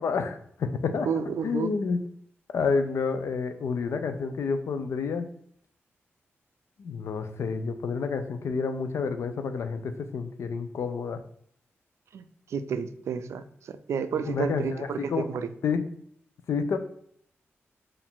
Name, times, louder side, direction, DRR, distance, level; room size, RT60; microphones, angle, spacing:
voice 1, 0.0-1.1 1.4-2.0 2.5-5.3 6.8-11.2 14.2-15.2 15.6-15.8 16.5-16.8, left 5 dB, 75° left, 8 dB, 0.5 m, -29 dB
voice 2, 1.0-1.7 12.1-15.5, right 6 dB, 85° right, 10 dB, 0.3 m, -31 dB
4.7 x 2.6 x 3.6 m, 0.65 s
wide cardioid pair, 135°, 5 cm